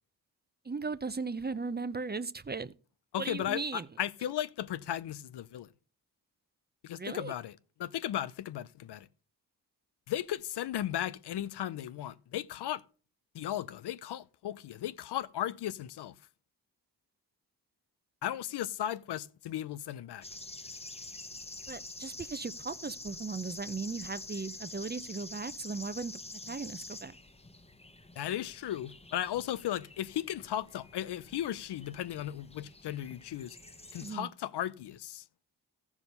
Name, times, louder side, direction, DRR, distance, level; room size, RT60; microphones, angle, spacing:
voice 1, 0.6-2.7 3.2-3.9 7.0-7.3 21.7-26.2 26.5-27.2 34.0-34.3, right 4 dB, 25° right, 0.7 m, -37 dB
voice 2, 3.1-5.7 6.8-7.5 7.8-9.1 10.1-12.8 13.3-16.2 18.2-20.2 28.2-33.6 33.9-35.2, left 11 dB, 75° left, 0.7 m, -36 dB
sound 1, 20.2-34.1, left 2 dB, 15° left, 1.0 m, -47 dB
14.5 x 4.8 x 5.4 m
supercardioid pair, 45°, 40 cm